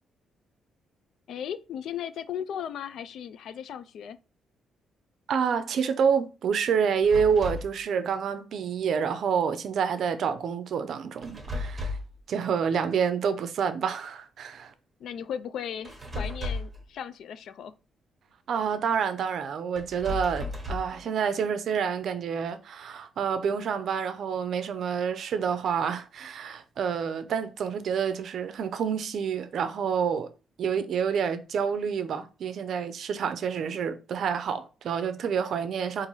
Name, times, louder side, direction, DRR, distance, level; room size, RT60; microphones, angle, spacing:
voice 1, 1.3-4.2 15.0-17.7, left 9 dB, 70° left, 0.3 m, -36 dB
voice 2, 5.3-12.0 12.3-14.7 18.5-30.3 30.6-36.1, right 7 dB, 65° right, 0.5 m, -28 dB
sound 1, 7.0-7.8 11.2-12.2 15.8-16.8 19.8-21.0, left 2 dB, 25° right, 0.9 m, -34 dB
3.9 x 2.5 x 3.1 m
cardioid pair, 90°, 0 cm